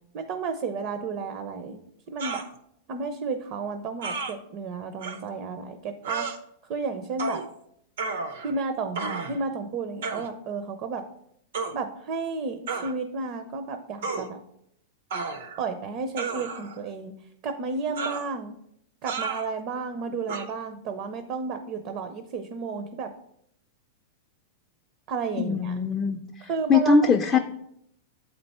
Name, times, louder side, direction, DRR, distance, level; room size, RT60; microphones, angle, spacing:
voice 1, 0.1-2.4 2.9-6.3 6.7-7.4 8.4-9.0 9.3-11.0 11.7-14.4 15.6-17.1 17.4-18.5 19.0-23.1 25.1-25.8 26.4-27.1, right 4 dB, 35° right, 8 dB, 0.5 m, -32 dB
sound 1, 2.2-2.5 4.0-4.3 5.0-5.2 6.0-6.4 7.2-7.5 8.0-8.6 8.9-9.4 10.0-10.3 11.5-11.7 12.7-12.9 14.0-14.3 15.1-15.6 16.2-16.8 18.0-18.3 19.1-19.5 20.3-20.4, right 4 dB, 80° right, 0.7 m, -32 dB
voice 2, 25.4-27.4, left 4 dB, 15° left, 2 dB, 0.4 m, -22 dB
8.0 x 4.4 x 4.2 m, 0.74 s
supercardioid pair, 165°, 0 cm